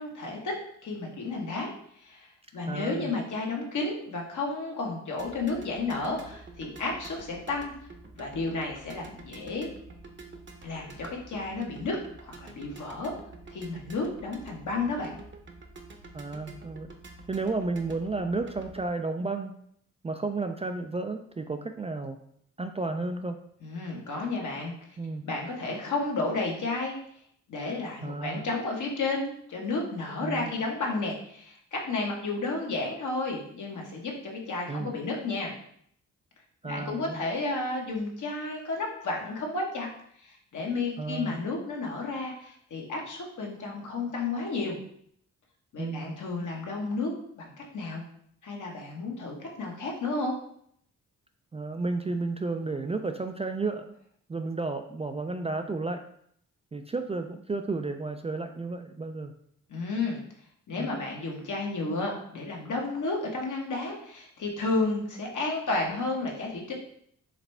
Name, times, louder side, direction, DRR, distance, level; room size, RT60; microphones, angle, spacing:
voice 1, 0.0-1.7 2.0-7.7 8.2-9.7 10.6-13.1 13.5-15.2 23.6-24.7 25.2-26.9 27.5-35.5 36.6-39.9 40.2-44.8 45.7-48.0 48.4-50.3 59.7-60.2 60.7-66.7, left 3 dB, 65° left, -1 dB, 1.3 m, -32 dB
voice 2, 2.7-3.1 16.1-16.9 17.3-19.5 20.0-22.2 22.6-23.4 25.0-25.3 28.0-28.4 30.2-30.5 34.7-34.9 36.6-37.2 41.0-41.4 45.8-46.2 51.5-53.9 54.3-56.0 56.7-59.3 60.8-60.9, right 3 dB, 20° right, 6 dB, 0.3 m, -32 dB
sound 1, 5.2-18.9, right 2 dB, 35° right, 0.8 m, -48 dB
4.8 x 3.3 x 3.3 m, 0.67 s
cardioid pair, 75°, 32 cm